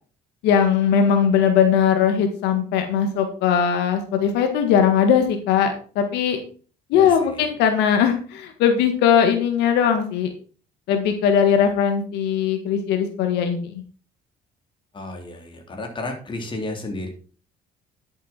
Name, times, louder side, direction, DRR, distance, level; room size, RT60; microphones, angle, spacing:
voice 1, 0.4-6.4 6.9-10.3 10.9-13.8, left 8 dB, 90° left, 6 dB, 1.8 m, -19 dB
voice 2, 6.9-7.5 14.9-17.1, left 2 dB, 30° left, 3 dB, 3.7 m, -32 dB
11.0 x 7.8 x 4.4 m, 0.39 s
cardioid pair, 110°, 17 cm